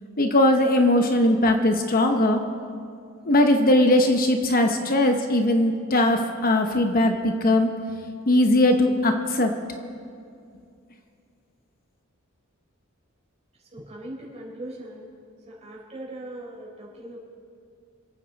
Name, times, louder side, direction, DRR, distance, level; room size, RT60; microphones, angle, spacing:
voice 1, 0.2-2.4 3.3-7.7 8.3-9.5, left 1 dB, 40° left, 5 dB, 0.9 m, -20 dB
voice 2, 13.7-15.1 15.5-17.2, right 1 dB, 30° right, -4 dB, 4.4 m, -39 dB
27.5 x 9.2 x 4.0 m, 2.4 s
head